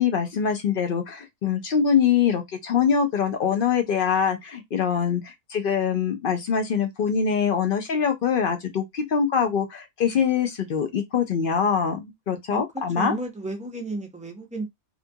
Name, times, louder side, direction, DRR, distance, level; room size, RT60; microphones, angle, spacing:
voice 1, 0.0-13.2, left 7 dB, 60° left, 0.6 m, -24 dB
voice 2, 12.5-14.7, right 2 dB, 10° right, 0.4 m, -33 dB
2.7 x 2.3 x 2.6 m
omnidirectional pair, 1.3 m